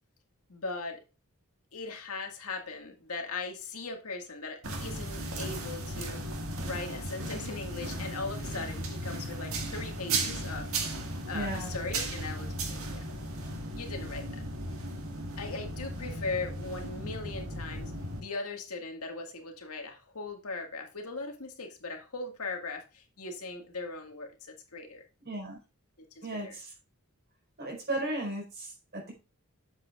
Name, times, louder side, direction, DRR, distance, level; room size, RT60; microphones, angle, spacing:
voice 1, 0.5-1.0 1.7-6.2 6.6-10.7 11.2-13.1 13.8-14.4 15.4-17.9 18.2-25.0 26.2-26.6, left 3 dB, 85° left, 1.9 m, -39 dB
sound 1, 4.6-18.2, right 2 dB, 70° right, 1.9 m, -36 dB
voice 2, 11.3-11.7 25.2-25.6 26.2-26.7 27.6-29.1, right 1 dB, 50° right, 4.5 m, -35 dB
8.1 x 7.7 x 2.5 m
head